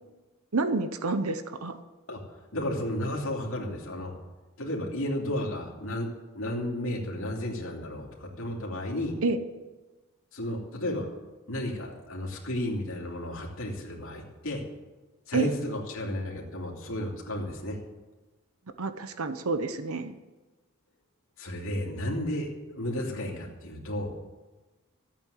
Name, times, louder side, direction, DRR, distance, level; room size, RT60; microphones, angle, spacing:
voice 1, 0.5-1.8 9.2-9.4 15.3-15.5 18.8-20.1, right 3 dB, 80° right, 10 dB, 0.9 m, -28 dB
voice 2, 2.1-4.1 4.6-9.2 10.3-11.1 11.5-14.6 15.3-17.8 21.4-24.1, left 1 dB, 65° left, -1 dB, 3.0 m, -33 dB
14.0 x 8.6 x 8.3 m, 1.2 s
head